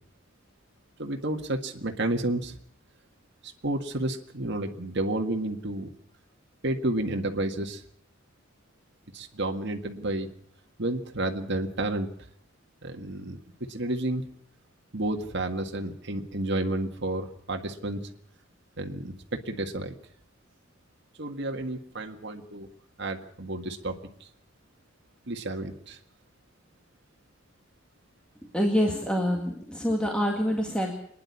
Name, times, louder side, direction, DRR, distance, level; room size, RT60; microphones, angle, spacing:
voice 1, 1.0-2.6 3.6-5.9 6.6-7.8 9.1-10.3 10.8-12.1 12.8-14.2 14.9-18.0 18.8-19.9 21.2-22.7 23.0-24.0 25.3-26.0, right 2 dB, 60° right, 4 dB, 1.8 m, -31 dB
voice 2, 28.5-30.9, equal, 5° left, 1 dB, 2.1 m, -26 dB
25.5 x 10.5 x 9.7 m, 0.68 s
head